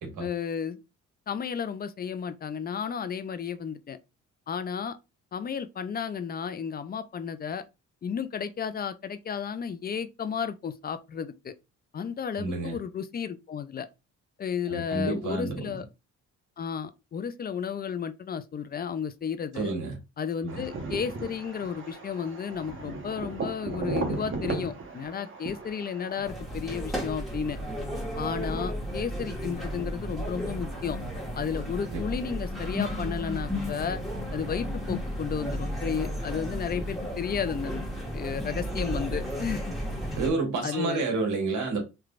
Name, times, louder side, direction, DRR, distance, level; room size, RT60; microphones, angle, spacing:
voice 1, 0.2-0.8 1.3-4.0 4.5-5.0 5.3-7.6 8.0-11.5 11.9-13.9 14.4-15.9 16.6-19.7 20.2-27.6 28.2-31.0 31.4-34.0 34.3-37.8 38.1-39.7 40.6-41.0, left 7 dB, 30° left, 0.4 m, -33 dB
voice 2, 12.4-12.8 14.7-15.8 19.5-20.0 20.4-20.6 31.9-32.0 40.2-41.8, right 3 dB, 75° right, 1.5 m, -29 dB
sound 1, 20.5-26.3, right 3 dB, 40° right, 1.1 m, -35 dB
sound 2, 26.2-40.3, equal, ahead, 1.6 m, -33 dB
3.3 x 3.0 x 2.4 m
cardioid pair, 90°, 30 cm